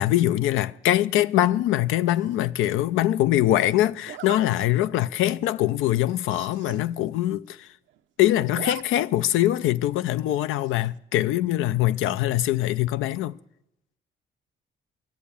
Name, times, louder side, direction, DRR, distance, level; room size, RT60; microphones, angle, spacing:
voice 1, 0.0-7.7 8.2-13.4, left 14 dB, 90° left, 0.5 m, -23 dB
Zipper (clothing), 2.1-2.5 4.0-4.4 5.0-5.2 5.5-5.6 5.8-5.9 6.2-6.8 7.2-7.3 7.5-8.0 8.3-8.8 9.2-9.3 10.6-11.0, right 11 dB, 70° right, 0.7 m, -41 dB
12.5 x 10.0 x 8.4 m
cardioid pair, 90°, 20 cm